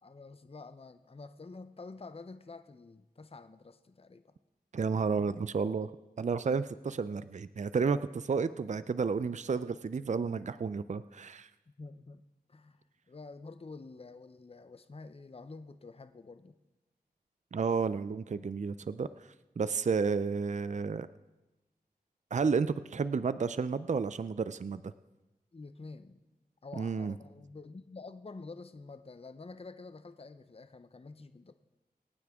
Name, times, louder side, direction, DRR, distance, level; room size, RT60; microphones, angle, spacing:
voice 1, 0.0-4.3 11.8-12.2 12.5-16.6 25.5-26.2 26.6-31.5, left 3 dB, 35° left, 11 dB, 0.6 m, -48 dB
voice 2, 4.7-5.9 6.2-11.5 17.5-19.3 19.6-21.1 22.3-24.9 26.7-27.1, right 5 dB, 45° right, 14 dB, 0.4 m, -31 dB
25.0 x 9.5 x 3.6 m, 1.1 s
wide cardioid pair, 50°, 17 cm